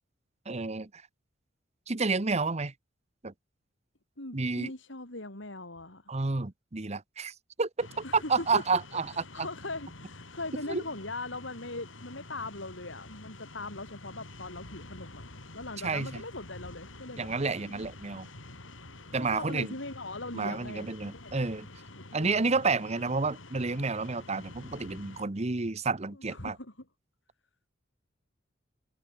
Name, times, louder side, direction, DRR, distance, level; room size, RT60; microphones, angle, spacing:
voice 1, 0.5-0.9 1.9-2.7 3.2-3.3 4.3-4.7 6.1-7.9 8.1-9.5 10.7-10.8 15.8-16.2 17.2-18.3 19.1-19.7 20.3-21.7 22.1-26.6, right 4 dB, 35° right, 1.0 m, -30 dB
voice 2, 4.2-6.1 8.0-8.6 9.3-15.2 15.5-17.3 17.6-17.8 19.2-21.3 22.0-22.5 26.3-26.7, left 2 dB, 70° left, 4.9 m, -40 dB
sound 1, 7.8-25.2, left 2 dB, 90° left, 5.1 m, -48 dB
head